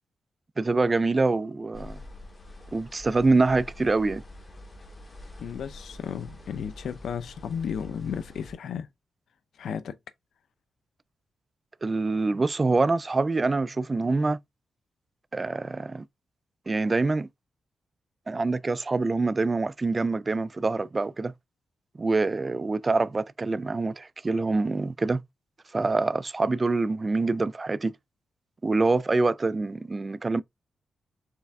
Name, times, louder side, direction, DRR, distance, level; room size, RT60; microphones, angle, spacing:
voice 1, 0.6-2.0 2.7-4.2 11.8-14.4 15.3-16.0 16.7-17.3 18.3-21.3 22.0-25.2 25.7-27.9 28.6-30.4, right 3 dB, 30° right, 0.3 m, -25 dB
sound 1, 1.7-8.5, left 1 dB, 30° left, 1.7 m, -45 dB
voice 2, 5.4-8.9 9.6-10.0, left 7 dB, 80° left, 0.5 m, -34 dB
4.7 x 3.3 x 3.4 m
cardioid pair, 105°, 0 cm